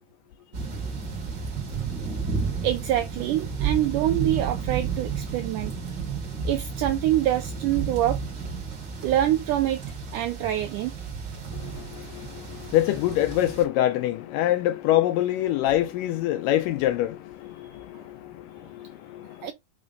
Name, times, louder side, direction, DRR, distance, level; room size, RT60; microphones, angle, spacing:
sound 1, 0.5-13.6, right 6 dB, 40° right, 1.9 m, -32 dB
voice 1, 2.6-5.7 6.5-8.2 9.0-9.8 10.1-10.9 19.4-19.5, right 12 dB, 90° right, 1.8 m, -25 dB
voice 2, 11.5-19.5, left 13 dB, 85° left, 2.0 m, -25 dB
5.2 x 3.6 x 5.2 m
omnidirectional pair, 4.3 m